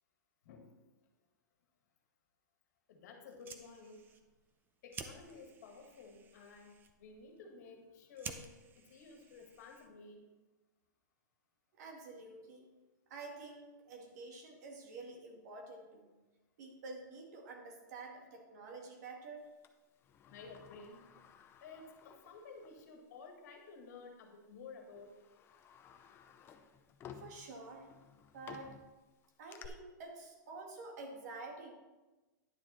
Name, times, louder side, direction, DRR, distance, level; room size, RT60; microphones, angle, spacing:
voice 1, 0.4-0.8 2.9-4.1 4.8-8.5 8.8-10.3 20.3-21.0 21.6-25.2, left 4 dB, 60° left, 3 dB, 1.9 m, -53 dB
Fire, 3.2-10.1, right 5 dB, 20° right, 0.7 m, -53 dB
voice 2, 11.8-12.6 13.1-16.1 16.6-19.5 27.2-27.9 28.3-28.8 29.4-31.7, right 3 dB, 60° right, 1 dB, 2.3 m, -49 dB
Sliding door, 19.6-22.9 23.2-23.3 24.3-24.5 24.9-29.7, left 8 dB, 25° left, 0.7 m, -56 dB
10.5 x 6.9 x 4.3 m, 1.2 s
hypercardioid pair, 130°, 10 cm